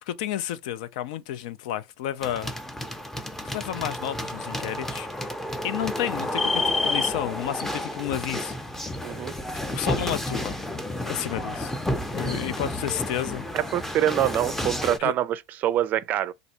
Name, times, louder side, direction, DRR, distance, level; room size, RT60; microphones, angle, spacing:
voice 1, 0.0-2.5 3.4-5.1 5.6-8.6 9.7-10.6 10.9-11.7 12.1-13.4 15.0-15.1, left 12 dB, 75° left, 0.4 m, -31 dB
sound 1, 2.2-15.0, left 1 dB, 5° left, 0.5 m, -30 dB
voice 2, 9.0-9.3 13.5-16.3, right 11 dB, 45° right, 0.4 m, -25 dB
3.1 x 2.6 x 2.8 m
supercardioid pair, 105°, 4 cm